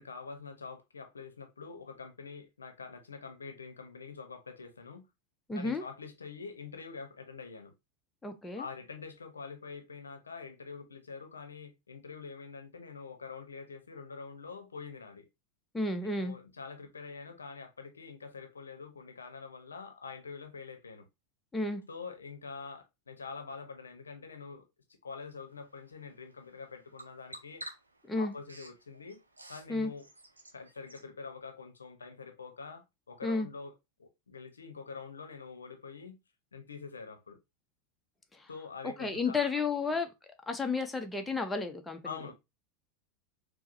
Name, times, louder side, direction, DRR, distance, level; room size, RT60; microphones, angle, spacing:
voice 1, 0.0-5.0 5.5-7.7 8.6-15.2 16.0-21.1 21.9-24.6 25.0-27.6 28.1-29.2 29.5-30.0 30.5-33.7 34.0-36.2 36.5-37.4 38.5-40.0 42.0-42.3, left 5 dB, 75° left, 0.6 m, -45 dB
voice 2, 5.5-5.8 8.2-8.6 15.7-16.4 21.5-21.8 28.1-28.3 29.7-29.9 33.2-33.5 38.3-38.5 38.8-40.1 40.5-42.0, left 3 dB, 10° left, 0.5 m, -32 dB
Bird vocalization bird call bird song, 25.5-31.1, right 1 dB, 80° right, 0.5 m, -52 dB
4.6 x 2.0 x 2.5 m
figure-of-eight pair, 85°, 0 cm